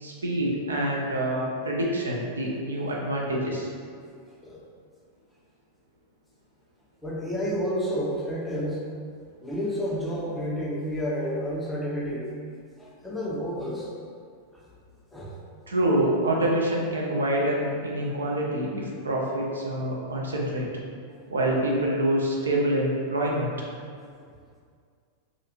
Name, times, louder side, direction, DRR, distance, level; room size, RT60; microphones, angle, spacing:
voice 1, 0.0-3.7 15.7-20.7 21.3-23.5, right 1 dB, 75° right, -2 dB, 0.4 m, -26 dB
voice 2, 7.0-8.8 9.4-12.3 12.8-13.9 14.5-14.6 15.1-15.3, equal, 5° left, -5 dB, 0.5 m, -30 dB
2.5 x 2.4 x 2.7 m, 2.2 s
figure-of-eight pair, 90°, 0 cm